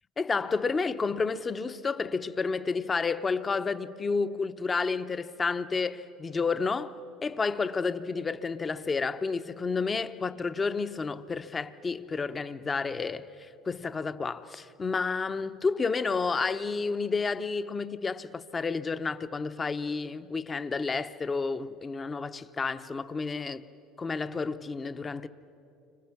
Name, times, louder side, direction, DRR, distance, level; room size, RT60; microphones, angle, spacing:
voice 1, 0.2-6.9 7.2-23.6 24.0-25.3, left 4 dB, 25° left, 1.0 m, -30 dB
30.0 x 25.5 x 6.0 m
hypercardioid pair, 85°, 0 cm